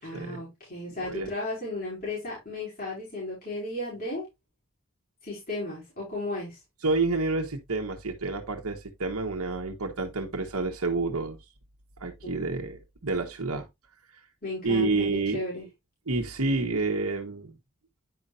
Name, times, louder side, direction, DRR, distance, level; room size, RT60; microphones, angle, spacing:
voice 1, 0.0-4.2 5.2-6.6 12.2-12.3 14.4-15.6, left 2 dB, 40° left, 4.9 m, -34 dB
voice 2, 6.8-11.4 12.0-13.7 14.6-15.4 16.1-17.5, right 3 dB, 85° right, 1.2 m, -29 dB
9.8 x 5.5 x 2.5 m
head